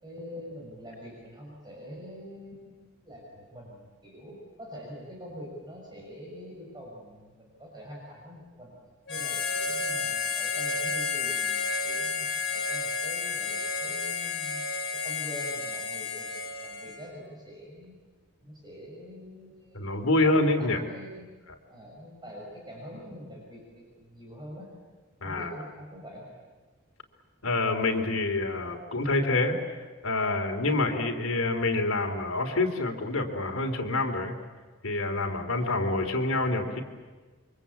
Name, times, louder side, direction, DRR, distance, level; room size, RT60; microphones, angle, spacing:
voice 1, 0.0-8.7 9.1-14.6 14.9-18.0 18.4-20.3 20.6-21.3 21.7-24.7 25.2-26.3, equal, 20° right, -2 dB, 6.3 m, -44 dB
Harmonica, 9.1-17.1, left 5 dB, 60° left, 3.8 m, -31 dB
voice 2, 19.7-20.8 21.5-21.6 25.2-25.5 27.4-29.5 30.0-34.3 34.8-36.8, left 2 dB, 75° left, 3 dB, 3.2 m, -27 dB
28.5 x 24.5 x 8.5 m, 1.4 s
head